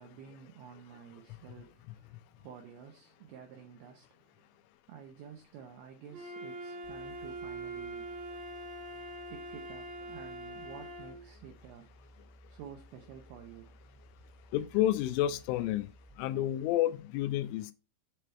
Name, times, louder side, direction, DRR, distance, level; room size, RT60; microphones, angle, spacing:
voice 1, 0.0-4.5 4.9-8.1 9.3-11.9 12.5-13.8, right 7 dB, 85° right, 2.2 m, -51 dB
Wind instrument woodwind instrument, 6.1-11.3, right 1 dB, 65° right, 2.3 m, -43 dB
sound 1, 6.8-16.3, right 1 dB, 10° right, 1.4 m, -58 dB
voice 2, 14.5-15.9 16.2-17.7, left 13 dB, 90° left, 3.1 m, -30 dB
7.8 x 3.3 x 4.3 m
omnidirectional pair, 5.5 m